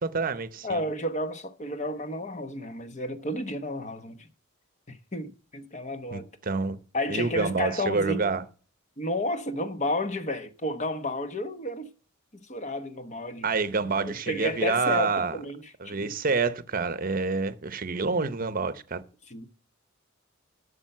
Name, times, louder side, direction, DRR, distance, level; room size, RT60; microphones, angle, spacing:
voice 1, 0.0-0.8 6.1-6.8 7.1-8.4 13.4-15.4 15.8-19.0, right 4 dB, 40° right, 0.8 m, -27 dB
voice 2, 0.6-4.3 4.9-6.2 6.9-8.3 9.0-11.9 12.3-13.5 14.0-16.1 19.3-19.5, left 1 dB, 35° left, 1.0 m, -32 dB
12.0 x 6.8 x 5.6 m
head